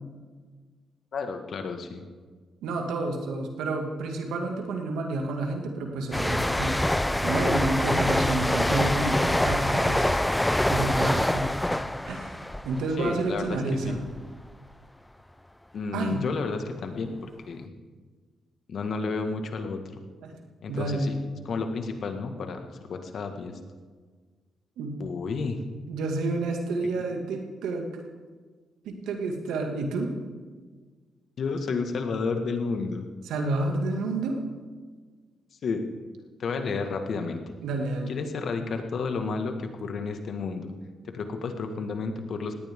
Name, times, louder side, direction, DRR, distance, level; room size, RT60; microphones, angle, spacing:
voice 1, 1.1-2.0 13.0-14.0 15.7-17.7 18.7-19.8 20.6-21.2 21.5-23.6 25.0-25.6 31.4-33.1 35.6-35.9 36.4-37.4 38.1-40.7 41.0-42.6, left 4 dB, 65° left, 6 dB, 1.9 m, -31 dB
voice 2, 2.6-6.8 7.2-10.2 10.7-11.5 12.1-12.4 12.6-14.0 15.9-16.3 20.2-20.3 20.7-21.1 24.8-25.0 25.9-27.9 28.8-30.1 33.2-34.4 37.6-38.2, right 2 dB, 80° right, 2 dB, 2.3 m, -29 dB
sound 1, 6.1-13.6 13.9-14.2, left 1 dB, 10° left, 0.6 m, -25 dB
19.0 x 17.5 x 3.8 m, 1.5 s
supercardioid pair, 50°, 0 cm